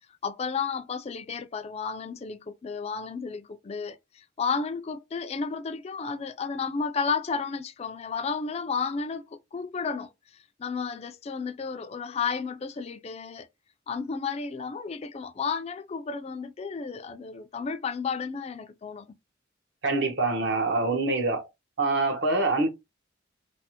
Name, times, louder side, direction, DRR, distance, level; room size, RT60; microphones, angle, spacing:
voice 1, 0.2-10.1 10.6-13.5 13.9-19.1, left 5 dB, 30° left, 0.3 m, -32 dB
voice 2, 19.8-21.5 21.8-22.7, right 3 dB, 60° right, 0.9 m, -25 dB
3.2 x 2.0 x 2.8 m
head